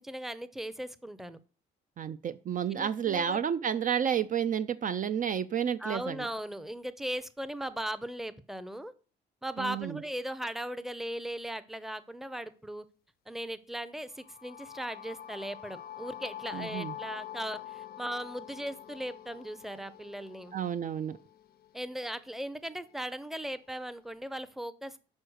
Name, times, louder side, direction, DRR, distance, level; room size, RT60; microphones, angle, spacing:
voice 1, 0.0-1.4 2.7-3.4 5.8-8.9 9.4-12.8 13.3-20.6 21.7-25.0, right 1 dB, ahead, 0.6 m, -38 dB
voice 2, 2.0-6.3 9.6-10.0 16.5-16.9 20.5-21.2, right 8 dB, 45° right, 0.4 m, -31 dB
sound 1, 14.1-22.0, left 11 dB, 50° left, 0.5 m, -45 dB
6.3 x 4.6 x 6.3 m
cardioid pair, 90°, 20 cm